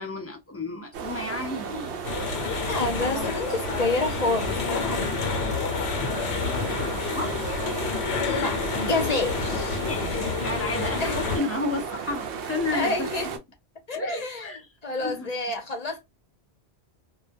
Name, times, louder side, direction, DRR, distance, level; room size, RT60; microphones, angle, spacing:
voice 1, 0.0-2.1 6.1-7.6 9.8-13.3 13.9-14.7 15.0-15.3, left 2 dB, 20° left, 0.4 m, -32 dB
sound 1, 0.9-13.4, right 6 dB, 90° right, 0.9 m, -34 dB
sound 2, 2.0-11.4, left 5 dB, 80° left, 0.9 m, -29 dB
voice 2, 2.6-5.6 8.2-9.8 10.8-11.3 12.7-13.3 13.9-14.5 14.8-16.0, left 2 dB, 40° left, 0.7 m, -29 dB
2.2 x 2.1 x 2.5 m
omnidirectional pair, 1.1 m